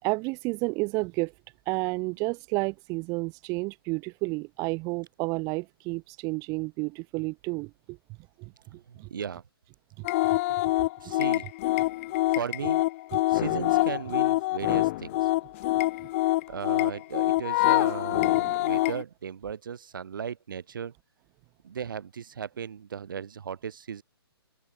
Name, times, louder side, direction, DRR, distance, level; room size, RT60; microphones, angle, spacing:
voice 1, 0.0-1.3 1.7-8.0 8.4-9.1 10.0-10.4 10.6-11.1, right 27 dB, 25° right, 4.3 m, -31 dB
voice 2, 8.9-9.4 11.0-11.5 12.3-12.8 13.3-15.3 16.5-20.9 21.6-24.0, right 7 dB, 55° right, 7.6 m, -36 dB
sound 1, 10.0-19.0, left 19 dB, 30° left, 3.2 m, -25 dB
figure-of-eight pair, 125°, 13 cm